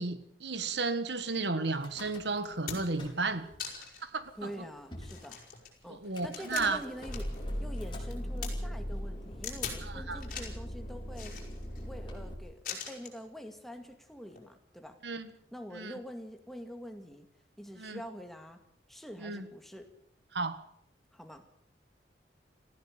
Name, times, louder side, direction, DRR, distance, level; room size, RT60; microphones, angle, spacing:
voice 1, 0.0-3.5 4.0-4.5 5.9-6.8 9.8-10.2 15.0-15.3 15.7-16.0 17.8-18.0 19.2-19.5 20.3-20.6, right 3 dB, 70° right, 12 dB, 1.6 m, -33 dB
Car / Engine starting / Idling, 1.7-2.5 2.8-3.6 4.2-4.3 4.5-4.6 4.9-5.2 6.2-12.3, equal, 25° left, 5.1 m, -40 dB
sound 1, 1.9-2.0 2.4-3.0 3.6-4.1 4.5-4.6 5.0-7.4 7.7-8.5 9.4-9.8 10.2-10.6 11.1-11.8 12.6-13.2 14.3-14.4, left 7 dB, 45° left, 6.2 m, -42 dB
voice 2, 4.4-5.4 5.8-7.3 7.6-11.4 11.8-15.0 15.5-17.3 17.6-18.6 18.9-19.9 21.1-21.4, equal, ahead, 5 dB, 2.2 m, -45 dB
19.0 x 15.5 x 8.7 m, 0.67 s
head